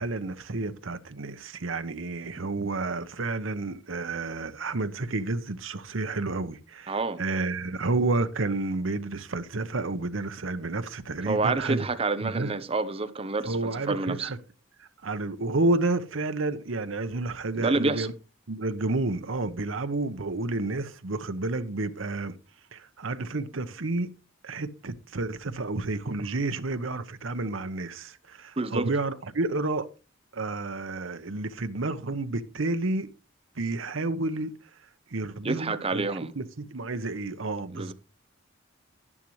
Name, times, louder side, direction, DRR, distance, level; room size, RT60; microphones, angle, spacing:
voice 1, 0.0-11.9 12.2-12.5 13.4-14.4 14.8-18.1 18.5-22.3 22.7-24.1 24.4-29.9 30.3-33.1 33.6-34.5 35.1-37.9, right 2 dB, 90° right, 0.9 m, -30 dB
voice 2, 6.9-7.2 11.2-14.3 17.5-18.1 28.6-28.9 35.4-36.3 37.7-37.9, right 3 dB, 30° right, 0.9 m, -28 dB
11.5 x 11.0 x 3.2 m
head